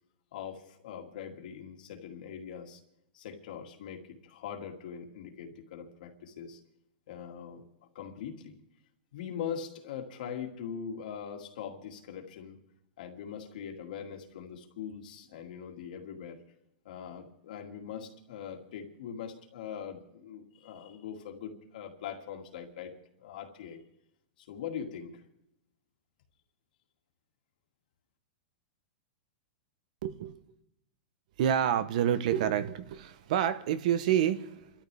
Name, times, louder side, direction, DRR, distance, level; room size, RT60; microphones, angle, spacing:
voice 1, 0.3-2.8 3.1-6.6 7.1-7.6 7.9-8.6 9.1-12.6 13.0-16.4 16.8-22.9 23.2-23.8 24.4-25.2, left 8 dB, 55° left, 3 dB, 2.2 m, -42 dB
voice 2, 30.0-30.4 31.4-34.7, right 10 dB, 45° right, 13 dB, 0.8 m, -28 dB
29.5 x 13.0 x 3.4 m, 0.82 s
supercardioid pair, 175°, 5 cm